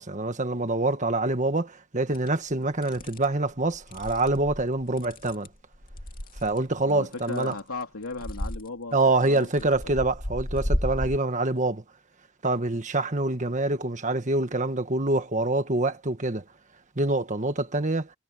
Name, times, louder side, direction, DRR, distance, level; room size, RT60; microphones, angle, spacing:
voice 1, 0.0-5.5 6.4-7.5 8.9-11.8 12.4-16.4 16.9-18.1, right 2 dB, 35° right, 1.5 m, -26 dB
sound 1, 2.1-2.3 2.8-3.3 3.7-6.6 7.1-7.8 8.1-8.7 9.3-11.2, equal, 40° left, 2.4 m, -33 dB
voice 2, 6.8-9.9, left 3 dB, 80° left, 2.9 m, -37 dB
head